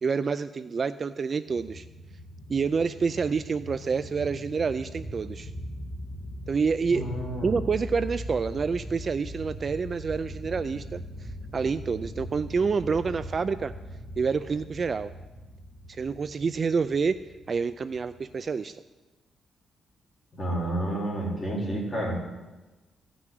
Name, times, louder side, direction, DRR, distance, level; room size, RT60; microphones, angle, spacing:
voice 1, 0.0-1.9 2.5-5.5 6.5-7.0 7.4-13.7 14.2-15.1 15.9-17.2 17.5-18.8, right 5 dB, 35° right, 13 dB, 0.3 m, -28 dB
sound 1, 1.5-18.5, equal, 50° left, 2.1 m, -40 dB
voice 2, 6.9-7.5 20.3-22.2, right 1 dB, 25° left, -4 dB, 4.2 m, -30 dB
15.5 x 6.1 x 9.3 m, 1.1 s
cardioid pair, 150°, 0 cm